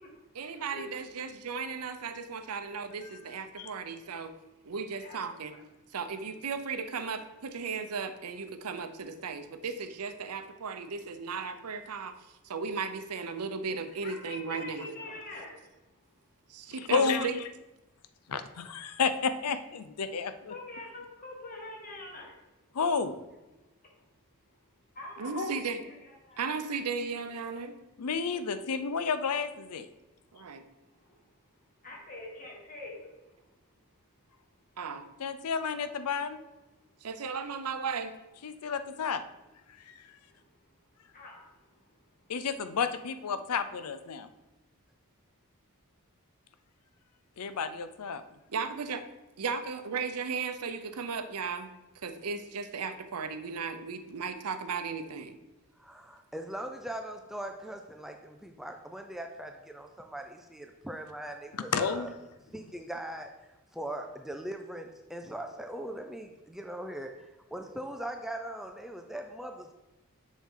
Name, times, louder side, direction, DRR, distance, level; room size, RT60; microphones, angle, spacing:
voice 1, 0.3-4.3 4.6-5.5 5.9-12.1 12.4-14.9 16.5-17.4 25.2-25.8 26.4-27.8 30.3-30.6 34.8-35.1 37.0-38.2 48.5-49.0 49.4-51.8 52.0-55.4, right 5 dB, 85° right, 9 dB, 0.7 m, -36 dB
voice 2, 14.0-15.6 20.5-22.4 24.9-26.4 31.0-31.1 31.8-33.1 41.1-41.5, left 2 dB, 40° left, -2 dB, 1.7 m, -44 dB
voice 3, 16.9-17.3 18.3-20.5 22.7-23.2 25.4-25.5 28.0-29.8 35.2-36.4 38.4-39.2 42.3-44.3 47.4-48.2 61.7-62.1, left 5 dB, 85° left, 11 dB, 0.5 m, -31 dB
voice 4, 55.8-62.1 62.5-63.3 63.7-69.7, right 1 dB, ahead, 4 dB, 0.4 m, -40 dB
7.1 x 6.3 x 3.7 m, 1.0 s
head